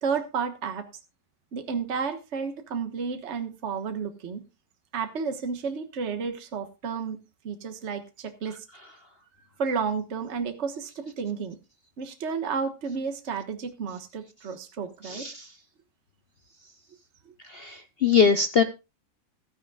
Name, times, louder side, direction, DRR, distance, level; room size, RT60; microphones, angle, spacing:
voice 1, 0.0-0.9 1.5-4.4 4.9-7.2 7.4-8.6 9.6-11.6 12.0-15.3, right 5 dB, 40° right, 7 dB, 1.5 m, -31 dB
voice 2, 15.0-15.5 17.5-18.6, left 6 dB, 60° left, 9 dB, 0.6 m, -22 dB
15.0 x 13.5 x 2.3 m, 0.27 s
omnidirectional pair, 1.9 m